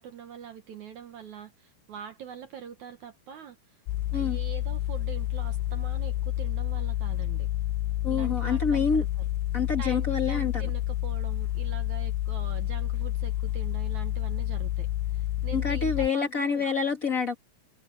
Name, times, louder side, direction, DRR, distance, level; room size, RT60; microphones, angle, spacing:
voice 1, 0.0-3.6 4.1-7.5 8.1-9.1 9.8-14.9 15.1-16.7, right 8 dB, 70° right, 1.9 m, -43 dB
sound 1, 3.9-16.1, left 15 dB, 85° left, 2.9 m, -29 dB
voice 2, 8.0-9.0 9.5-10.6 15.5-17.3, left 5 dB, 45° left, 1.0 m, -27 dB
omnidirectional pair, 4.8 m